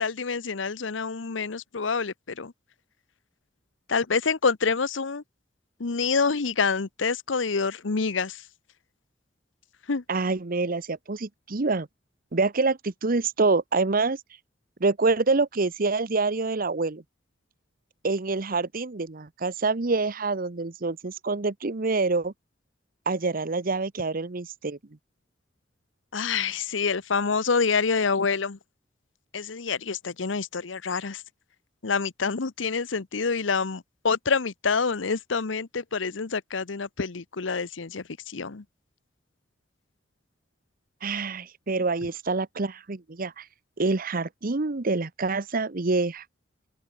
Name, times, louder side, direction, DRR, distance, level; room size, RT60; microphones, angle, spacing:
voice 1, 0.0-2.5 3.9-5.2 5.8-8.4 9.9-10.0 26.1-28.6 29.3-31.2 31.8-38.6, left 5 dB, 85° left, 0.9 m, -27 dB
voice 2, 10.1-11.9 12.3-14.2 14.8-17.0 18.0-22.3 23.1-24.8 41.0-43.5 43.8-46.2, right 3 dB, 50° right, 0.9 m, -26 dB
open air
head